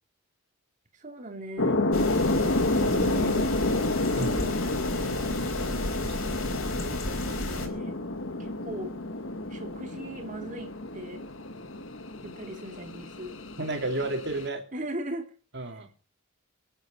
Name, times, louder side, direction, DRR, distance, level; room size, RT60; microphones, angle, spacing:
voice 1, 1.0-1.8 2.8-3.9 4.3-4.6 7.4-8.0 8.4-9.0 9.5-11.2 12.2-13.4 14.7-15.3 15.7-15.8, right 1 dB, 40° right, 4 dB, 2.7 m, -39 dB
sound 1, 1.6-14.5, left 2 dB, 65° left, 1.4 m, -30 dB
sound 2, 1.9-7.7, left 2 dB, 90° left, 4.4 m, -34 dB
voice 2, 6.0-6.5 13.6-14.7 15.5-15.9, right 2 dB, 60° right, 4 dB, 3.2 m, -32 dB
25.5 x 9.1 x 5.2 m, 0.38 s
head